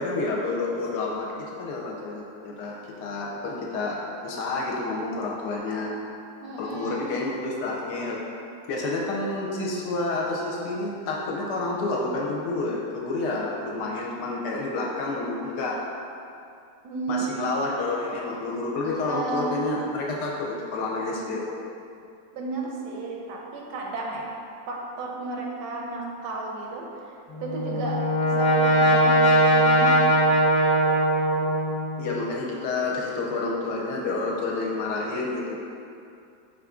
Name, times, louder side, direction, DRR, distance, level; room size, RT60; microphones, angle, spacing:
voice 1, 0.0-4.0 4.2-5.9 6.6-8.2 8.7-15.8 17.1-21.4 32.0-35.6, left 3 dB, 75° left, -3 dB, 1.1 m, -29 dB
voice 2, 6.4-7.1 16.8-17.3 18.8-19.6 22.3-24.3 24.7-30.1, right 3 dB, 80° right, -1 dB, 1.2 m, -33 dB
Brass instrument, 27.3-32.1, right 1 dB, 10° left, 0.3 m, -20 dB
4.5 x 2.5 x 3.5 m, 2.5 s
omnidirectional pair, 1.9 m